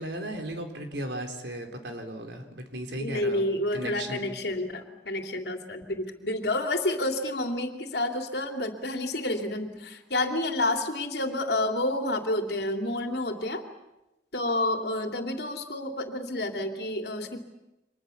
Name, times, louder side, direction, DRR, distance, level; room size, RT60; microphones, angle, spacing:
voice 1, 0.0-3.4 3.7-4.4, right 1 dB, 70° right, 4 dB, 4.1 m, -36 dB
voice 2, 3.0-13.6 14.3-17.4, left 1 dB, 60° left, 5 dB, 3.0 m, -29 dB
30.0 x 25.5 x 7.1 m, 0.99 s
head